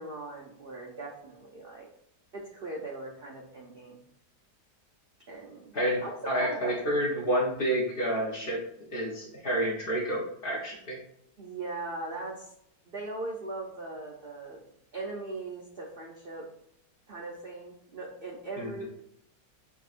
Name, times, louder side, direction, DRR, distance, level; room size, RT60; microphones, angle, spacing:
voice 1, 0.0-1.9 2.3-4.0 5.3-5.7 6.0-6.9 11.4-12.5 12.9-14.6 14.9-16.5 17.1-18.8, right 2 dB, 75° right, -1 dB, 0.5 m, -39 dB
voice 2, 5.7-8.6 8.9-11.0 18.6-18.8, right 1 dB, 40° left, -2 dB, 0.8 m, -29 dB
6.0 x 2.7 x 2.4 m, 0.76 s
omnidirectional pair, 1.8 m